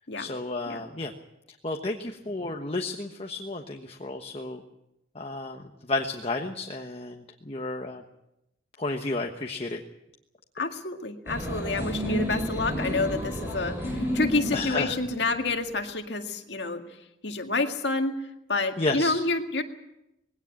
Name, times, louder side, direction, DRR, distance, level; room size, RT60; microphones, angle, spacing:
voice 1, 0.2-1.1 1.6-4.6 5.1-8.0 8.8-9.8 14.5-14.9 18.8-19.2, left 2 dB, 30° left, 3 dB, 1.2 m, -32 dB
voice 2, 10.6-16.8 17.2-18.2 18.5-19.6, left 3 dB, 65° left, 5 dB, 2.0 m, -28 dB
sound 1, 11.3-15.7, equal, 10° right, 6.2 m, -31 dB
20.5 x 17.0 x 8.7 m, 0.88 s
head